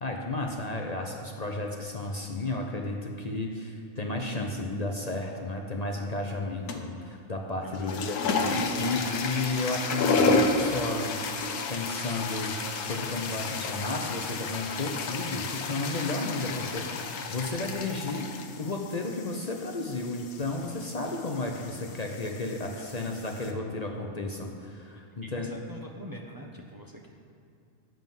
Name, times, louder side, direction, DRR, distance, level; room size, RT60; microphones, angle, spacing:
voice 1, 0.0-18.3 18.6-25.5, left 2 dB, 40° left, 1 dB, 0.6 m, -33 dB
sound 1, 6.7-7.0 7.7-23.5, left 3 dB, 85° left, 1.3 m, -32 dB
voice 2, 7.6-8.1 22.7-22.9 25.3-27.1, equal, 20° right, -1 dB, 0.6 m, -44 dB
9.3 x 7.6 x 5.4 m, 2.5 s
omnidirectional pair, 1.6 m